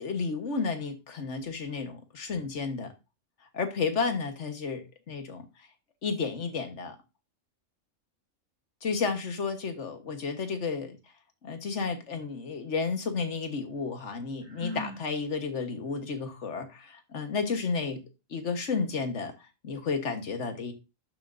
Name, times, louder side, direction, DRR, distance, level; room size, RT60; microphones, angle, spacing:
voice 1, 0.0-2.9 3.5-5.7 6.0-7.0 8.8-11.0 11.4-18.0 18.3-20.7, left 4 dB, 65° left, 1.6 m, -32 dB
Sigh, 14.4-15.1, left 1 dB, 85° right, 2.3 m, -39 dB
11.5 x 7.4 x 2.6 m
omnidirectional pair, 1.3 m